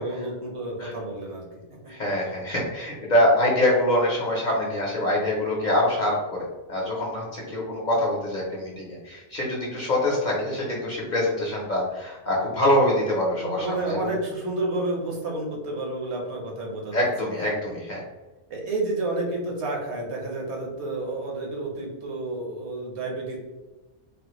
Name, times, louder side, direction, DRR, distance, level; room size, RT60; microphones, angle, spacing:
voice 1, 0.0-1.5 13.4-17.1 17.6-17.7 18.5-23.4, right 2 dB, 65° right, -1 dB, 1.0 m, -30 dB
voice 2, 1.9-14.1 16.9-18.0, left 1 dB, 45° left, -4 dB, 0.7 m, -24 dB
3.5 x 2.1 x 3.0 m, 1.2 s
omnidirectional pair, 1.3 m